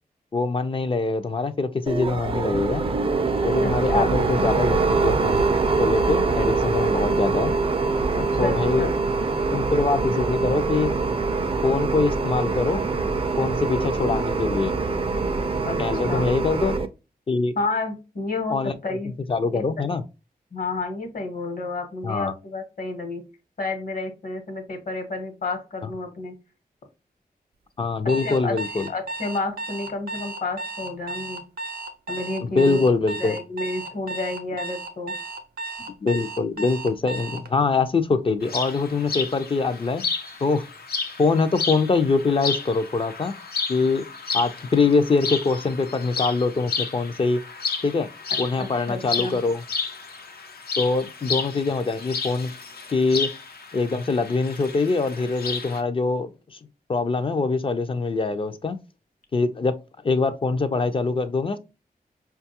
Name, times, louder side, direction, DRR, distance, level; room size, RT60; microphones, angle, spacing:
voice 1, 0.3-2.8 3.4-5.4 5.8-7.5 8.4-8.9 9.5-10.9 11.6-12.8 13.4-14.8 15.8-16.7 17.3-17.5 18.5-18.7 19.3-20.0 22.0-22.3 27.8-28.9 32.4-33.4 35.9-40.0 40.4-40.6 41.2-43.3 43.7-44.1 44.3-47.4 47.8-48.1 48.4-49.6 50.8-52.5 52.9-53.3 53.7-56.6 56.9-58.8 59.3-59.7 60.0-61.6, left 4 dB, 35° left, 0.4 m, -23 dB
sound 1, 1.9-16.9, right 4 dB, 35° right, 0.4 m, -24 dB
voice 2, 3.6-4.2 8.1-9.0 15.7-15.8 16.1-16.4 17.5-19.1 19.5-19.6 20.5-23.3 23.6-26.4 28.2-28.6 28.9-31.4 32.1-32.8 33.2-35.2 48.6-49.4, left 3 dB, 65° left, 1.0 m, -30 dB
Alarm, 28.1-37.5, right 2 dB, 90° right, 0.6 m, -34 dB
sound 2, 38.4-55.8, left 5 dB, 85° left, 0.6 m, -32 dB
5.1 x 2.3 x 2.7 m
wide cardioid pair, 140°, 16 cm